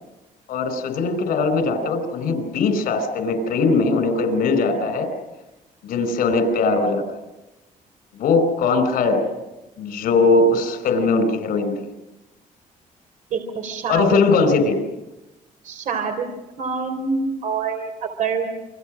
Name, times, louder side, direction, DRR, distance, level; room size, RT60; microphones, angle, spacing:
voice 1, 0.5-5.1 5.8-7.2 8.1-9.3 9.8-11.7 13.9-14.8, left 3 dB, 80° left, 10 dB, 4.8 m, -20 dB
voice 2, 13.3-14.2 15.6-16.3 16.6-18.5, right 5 dB, 60° right, 5 dB, 3.7 m, -26 dB
29.0 x 24.5 x 6.4 m, 1.0 s
cardioid pair, 150°, 15 cm